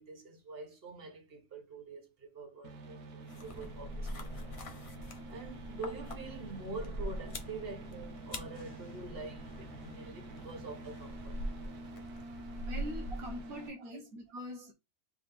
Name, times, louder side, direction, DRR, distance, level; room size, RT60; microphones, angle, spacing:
voice 1, 0.0-4.5 5.3-11.4 13.8-13.9, right 3 dB, 40° right, 1.6 m, -46 dB
sound 1, 2.6-13.7, right 2 dB, 90° right, 1.5 m, -48 dB
sound 2, 3.3-13.6, equal, 35° left, 0.5 m, -43 dB
voice 2, 12.6-14.7, equal, 75° right, 1.3 m, -43 dB
3.8 x 3.4 x 4.1 m
omnidirectional pair, 1.6 m